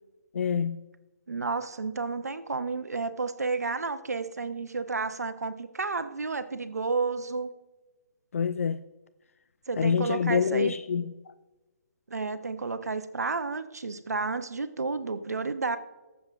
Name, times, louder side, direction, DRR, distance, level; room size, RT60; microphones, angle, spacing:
voice 1, 0.3-0.8 8.3-8.8 9.8-11.1, left 6 dB, 55° left, 0.4 m, -26 dB
voice 2, 1.3-7.5 9.7-10.7 12.1-15.8, right 4 dB, 70° right, 0.8 m, -31 dB
21.5 x 7.3 x 2.5 m
figure-of-eight pair, 135°, 9 cm